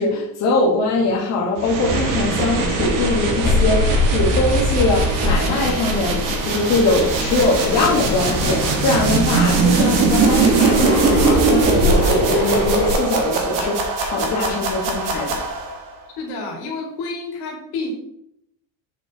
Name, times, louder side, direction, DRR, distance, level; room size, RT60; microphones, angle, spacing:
voice 1, 0.0-15.4, left 3 dB, 45° left, -3 dB, 1.3 m, -22 dB
sound 1, 1.6-15.9, right 4 dB, 55° right, 1.5 m, -21 dB
Fixed-wing aircraft airplane, 1.9-12.9, left 2 dB, 25° left, 1.8 m, -23 dB
voice 2, 16.2-17.9, left 3 dB, 75° left, 0 dB, 2.4 m, -29 dB
7.3 x 6.0 x 2.9 m, 0.78 s
cardioid pair, 155°, 40 cm